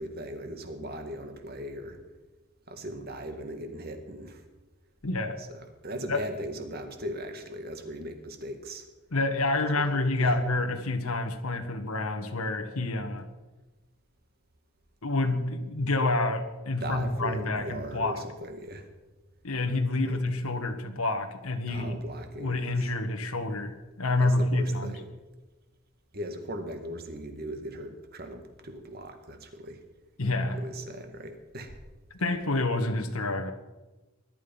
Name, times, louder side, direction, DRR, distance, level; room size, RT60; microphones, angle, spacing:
voice 1, 0.0-2.0 2.7-4.4 5.4-8.9 9.9-10.3 16.8-18.9 20.1-20.2 21.7-22.5 22.8-22.9 24.2-25.1 26.1-29.8 30.5-31.8, right 1 dB, 45° right, 6 dB, 2.1 m, -39 dB
voice 2, 5.0-5.4 6.1-6.2 9.1-13.3 15.0-18.2 19.4-22.0 22.4-25.0 30.2-30.6 32.2-33.5, left 2 dB, 90° left, 4 dB, 1.5 m, -28 dB
20.5 x 12.0 x 5.5 m, 1.2 s
head